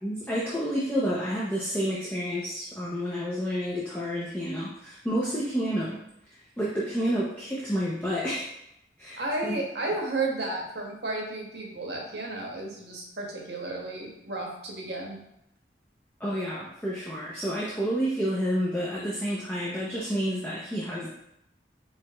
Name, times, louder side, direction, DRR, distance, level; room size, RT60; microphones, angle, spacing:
voice 1, 0.0-6.0 6.6-8.5 9.0-9.6 16.2-21.1, equal, 10° left, -7 dB, 0.5 m, -29 dB
voice 2, 9.1-15.2, right 2 dB, 65° right, -1 dB, 0.9 m, -33 dB
4.8 x 3.0 x 2.3 m, 0.80 s
head